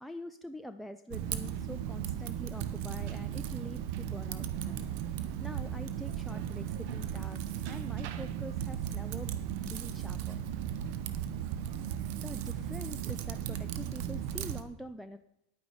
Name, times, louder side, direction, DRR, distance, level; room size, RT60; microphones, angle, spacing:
voice 1, 0.0-4.8 5.4-9.4 9.6-10.4 12.2-15.2, equal, ahead, 7 dB, 0.5 m, -45 dB
Typing, 1.1-14.6, right 10 dB, 55° right, 0.9 m, -36 dB
10.0 x 9.0 x 4.8 m, 0.82 s
figure-of-eight pair, 90°, 0 cm